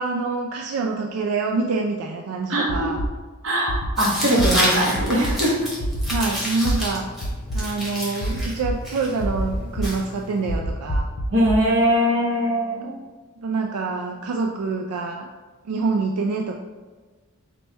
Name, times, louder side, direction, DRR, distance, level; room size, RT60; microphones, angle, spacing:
voice 1, 0.0-3.0 6.1-7.1 7.5-11.1 13.4-15.3 15.6-16.6, right 4 dB, 85° right, 2 dB, 0.3 m, -26 dB
voice 2, 2.5-2.9 3.4-5.8 11.3-13.0, equal, 60° right, -1 dB, 0.9 m, -21 dB
sound 1, 2.7-3.1 3.7-3.9 4.4-4.5 4.9-5.3 5.8-6.2 6.6-6.7 7.2-7.6 8.2-8.7 9.2-9.9 10.5-11.6, equal, 70° left, 0.5 m, -25 dB
Tearing, 4.0-10.6, equal, ahead, 0.9 m, -29 dB
4.2 x 2.2 x 4.4 m, 1.4 s
head